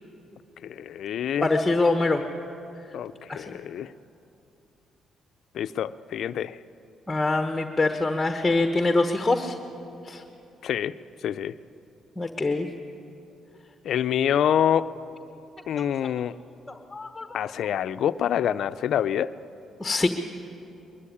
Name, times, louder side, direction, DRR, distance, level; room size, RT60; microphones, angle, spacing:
voice 1, 0.6-1.5 2.9-3.9 5.5-6.6 10.6-10.9 11.2-11.5 13.8-14.9 15.7-16.3 17.3-19.3, left 9 dB, 70° left, 13 dB, 0.5 m, -26 dB
voice 2, 1.4-2.2 3.3-3.4 7.1-9.6 10.1-10.2 12.2-12.7 15.8-15.9 16.7-17.3 19.8-20.1, left 2 dB, 15° left, 6 dB, 1.1 m, -24 dB
22.0 x 13.5 x 9.9 m, 2.8 s
cardioid pair, 90°, 0 cm